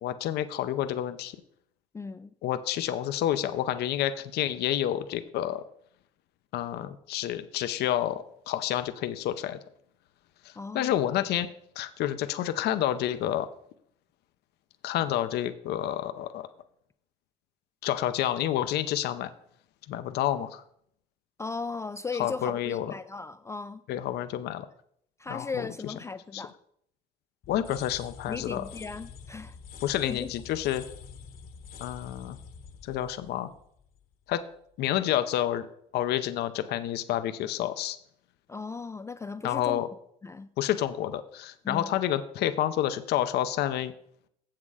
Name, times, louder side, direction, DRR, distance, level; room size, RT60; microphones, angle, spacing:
voice 1, 0.0-1.4 2.4-5.6 6.5-9.6 10.4-11.5 11.8-13.5 14.8-16.5 17.8-19.3 19.9-20.6 22.2-22.9 23.9-24.7 25.3-25.9 26.3-26.4 27.5-28.6 29.8-30.8 31.8-32.4 32.8-33.5 34.3-34.4 34.8-35.7 35.9-38.0 39.4-39.9 40.6-43.9, left 12 dB, 75° left, 0.6 m, -29 dB
voice 2, 1.9-2.3 10.6-10.9 21.4-23.8 25.2-26.5 28.3-29.6 30.0-30.3 38.5-39.8 40.2-40.5 41.6-41.9, left 4 dB, 15° left, 0.3 m, -37 dB
sound 1, 27.4-34.3, left 6 dB, 60° left, 1.1 m, -47 dB
7.5 x 7.4 x 4.8 m
cardioid pair, 110°, 17 cm